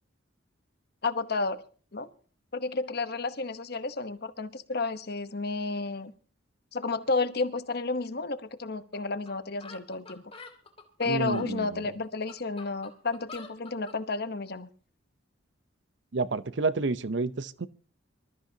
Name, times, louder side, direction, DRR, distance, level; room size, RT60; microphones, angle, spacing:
voice 1, 1.0-1.6 1.9-2.1 2.5-6.1 6.7-10.2 11.0-14.7, left 3 dB, 50° left, 1.0 m, -31 dB
sound 1, 8.9-9.0 9.3-9.4 9.6-11.5 12.0-14.0, left 3 dB, 30° left, 2.4 m, -46 dB
voice 2, 11.1-11.8 16.1-17.7, right 3 dB, 65° right, 0.7 m, -29 dB
25.5 x 13.5 x 2.8 m
head